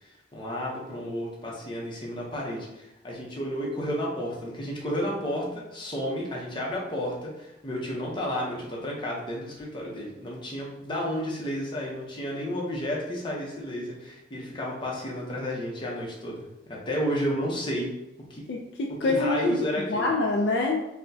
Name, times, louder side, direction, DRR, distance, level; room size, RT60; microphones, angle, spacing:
voice 1, 0.0-17.9 18.3-18.4 19.1-20.1, equal, 25° left, -3 dB, 0.7 m, -32 dB
voice 2, 18.5-20.9, left 3 dB, 65° left, 1 dB, 0.3 m, -26 dB
4.2 x 2.1 x 2.7 m, 0.95 s
head